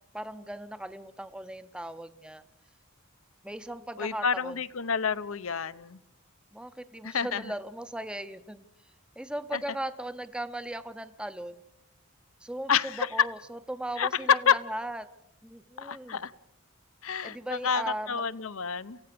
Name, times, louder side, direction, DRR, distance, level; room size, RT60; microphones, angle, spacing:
voice 1, 0.1-2.4 3.4-4.6 6.5-8.6 9.2-11.6 12.4-15.1 15.4-16.2 17.2-18.2, right 1 dB, 5° right, 12 dB, 0.7 m, -38 dB
voice 2, 4.0-6.0 7.0-7.4 9.5-9.6 12.7-13.3 14.0-14.6 15.8-16.3 17.0-19.0, left 7 dB, 70° left, 16 dB, 0.8 m, -28 dB
28.5 x 16.0 x 6.9 m, 0.86 s
head